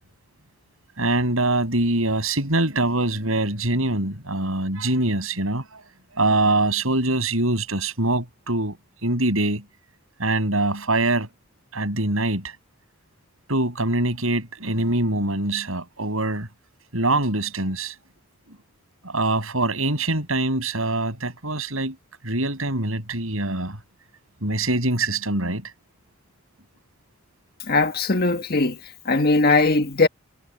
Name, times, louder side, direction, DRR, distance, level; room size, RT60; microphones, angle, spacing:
voice 1, 1.0-5.8 6.1-8.8 9.0-9.6 10.2-11.3 11.7-12.5 13.5-16.5 16.9-17.9 19.0-22.0 22.2-23.8 24.4-25.7, right 2 dB, 75° right, 7.8 m, -23 dB
voice 2, 27.7-28.8 29.0-30.1, left 3 dB, 45° left, 1.6 m, -19 dB
head